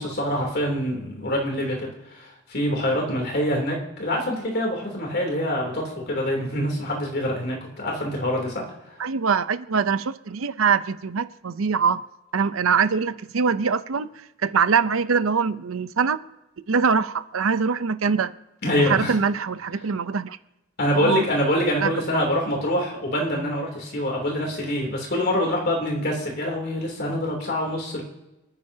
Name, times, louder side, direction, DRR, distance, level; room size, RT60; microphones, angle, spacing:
voice 1, 0.0-1.9 2.1-2.2 2.5-8.6 18.6-19.1 20.8-28.0, equal, 50° left, 0 dB, 3.1 m, -25 dB
voice 2, 9.0-12.0 12.3-14.1 14.4-16.2 16.7-18.3 18.8-20.4 20.9-21.3 21.8-22.2, right 5 dB, 85° right, 13 dB, 0.6 m, -23 dB
29.0 x 9.9 x 2.8 m, 1.0 s
head